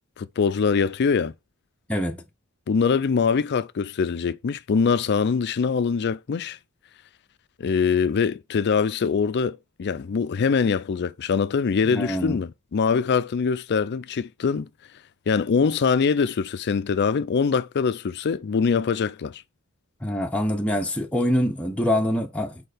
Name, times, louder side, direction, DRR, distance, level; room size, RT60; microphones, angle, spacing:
voice 1, 0.2-1.3 2.7-6.6 7.6-14.7 15.3-19.4, left 5 dB, 50° left, 0.4 m, -23 dB
voice 2, 11.9-12.4 20.0-22.6, equal, 5° left, 0.7 m, -25 dB
4.5 x 4.3 x 4.9 m
head